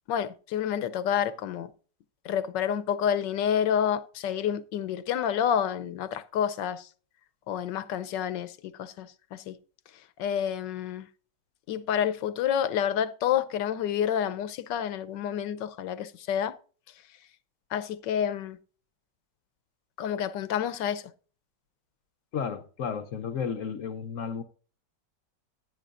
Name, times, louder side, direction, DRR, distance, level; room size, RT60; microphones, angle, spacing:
voice 1, 0.1-1.7 2.2-6.9 7.5-9.6 10.2-11.1 11.7-16.5 17.7-18.6 20.0-21.0, left 9 dB, 85° left, 1.4 m, -29 dB
voice 2, 22.3-24.4, left 6 dB, 60° left, 0.9 m, -33 dB
15.0 x 9.8 x 2.5 m
omnidirectional pair, 1.9 m